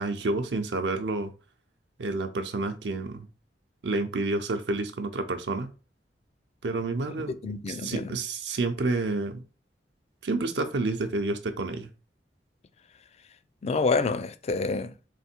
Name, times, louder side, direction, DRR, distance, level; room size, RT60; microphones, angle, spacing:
voice 1, 0.0-1.3 2.0-3.3 3.8-5.7 6.6-7.4 7.7-9.4 10.2-11.9, right 3 dB, 75° right, 0.6 m, -29 dB
voice 2, 7.4-8.1 13.6-14.9, left 4 dB, 35° left, 0.4 m, -27 dB
3.5 x 3.4 x 4.3 m
head